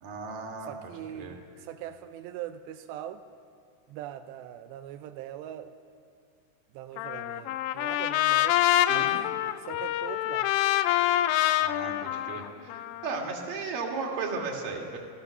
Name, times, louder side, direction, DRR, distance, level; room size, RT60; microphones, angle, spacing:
voice 1, 0.0-0.7 1.1-1.4 8.9-9.1 11.6-15.0, right 4 dB, 50° right, 1 dB, 3.6 m, -35 dB
voice 2, 0.6-3.2 3.9-5.7 6.7-8.6 8.9-10.5, right 11 dB, 85° right, 8 dB, 2.4 m, -42 dB
Trumpet, 7.0-13.2, left 14 dB, 85° left, 3.3 m, -26 dB
28.0 x 16.0 x 6.7 m, 2.2 s
omnidirectional pair, 5.7 m